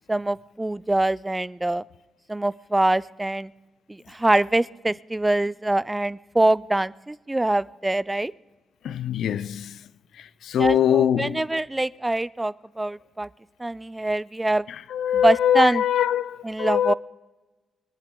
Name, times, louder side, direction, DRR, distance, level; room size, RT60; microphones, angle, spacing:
voice 1, 0.1-1.8 2.3-3.5 3.9-8.3 10.6-13.3 13.6-14.6 15.2-15.8 16.4-16.9, right 2 dB, 15° right, 0.3 m, -24 dB
voice 2, 8.8-9.8 10.4-11.4 14.9-16.9, left 10 dB, 80° left, 0.4 m, -22 dB
24.0 x 10.5 x 3.8 m
cardioid pair, 70°, 0 cm